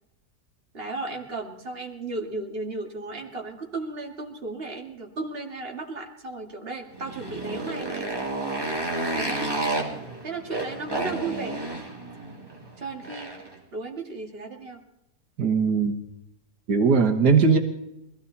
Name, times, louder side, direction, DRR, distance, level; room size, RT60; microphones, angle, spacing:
voice 1, 0.7-8.2 9.1-9.5 10.2-11.6 12.8-13.3 13.7-14.8, right 3 dB, 35° right, 1 dB, 2.5 m, -35 dB
Motorcycle, 6.9-13.6, right 2 dB, 15° right, 2.6 m, -31 dB
voice 2, 15.4-15.9 16.7-17.6, right 5 dB, 85° right, 3 dB, 1.9 m, -19 dB
22.0 x 16.0 x 4.1 m, 0.88 s
omnidirectional pair, 1.7 m